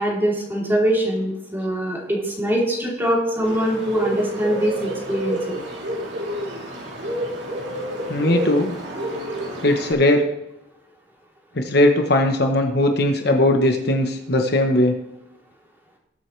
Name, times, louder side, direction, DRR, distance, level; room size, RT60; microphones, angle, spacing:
voice 1, 0.0-5.6, right 1 dB, 10° right, -4 dB, 3.2 m, -23 dB
Bird, 3.4-9.9, equal, 60° right, 3.2 m, -29 dB
voice 2, 8.1-8.8 9.6-10.2 11.6-15.0, left 1 dB, 55° left, 4 dB, 1.0 m, -19 dB
20.5 x 7.8 x 3.3 m, 0.87 s
head